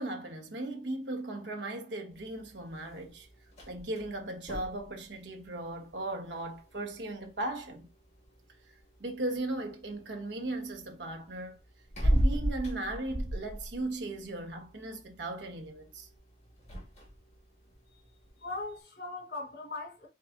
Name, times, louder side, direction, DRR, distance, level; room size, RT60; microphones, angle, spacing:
voice 1, 0.0-3.3 3.7-7.9 9.0-11.6 12.0-16.1, right 2 dB, 90° right, 1.2 m, -37 dB
sound 1, 2.1-18.8, equal, 40° left, 2.0 m, -38 dB
voice 2, 18.4-20.1, left 3 dB, 65° left, 1.5 m, -40 dB
4.7 x 4.2 x 2.6 m
head